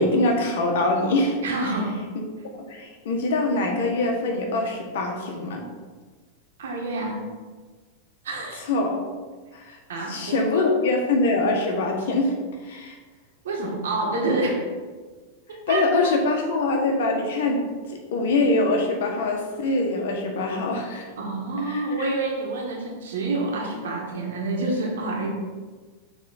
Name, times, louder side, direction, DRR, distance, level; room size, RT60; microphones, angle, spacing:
voice 1, 0.0-1.4 2.7-5.6 8.7-9.0 9.5-9.8 10.1-12.3 12.6-13.0 15.7-21.0 21.7-22.1, left 2 dB, 75° left, 2 dB, 1.4 m, -23 dB
voice 2, 1.4-2.0 6.6-7.3 8.2-8.6 9.9-10.7 13.4-14.6 15.5-16.1 21.2-25.3, right 2 dB, 90° right, -1 dB, 1.9 m, -28 dB
7.3 x 3.6 x 4.4 m, 1.4 s
supercardioid pair, 140°, 0 cm